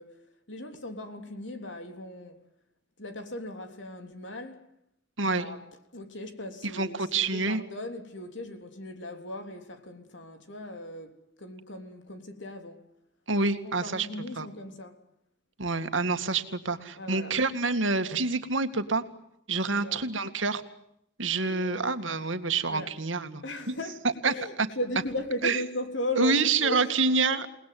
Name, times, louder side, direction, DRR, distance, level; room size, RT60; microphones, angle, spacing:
voice 1, 0.0-2.4 3.0-4.6 5.2-5.6 5.9-12.9 13.4-15.0 17.0-17.3 19.7-20.0 21.4-21.9 22.7-22.9 23.4-27.3, left 1 dB, 70° left, 3.4 m, -37 dB
voice 2, 6.7-7.6 13.3-14.1 14.4-14.5 15.6-19.0 19.5-20.6 21.2-23.4 24.2-24.7 25.4-25.6 26.2-27.5, right 4 dB, 80° right, 2.1 m, -27 dB
29.0 x 19.5 x 9.4 m
head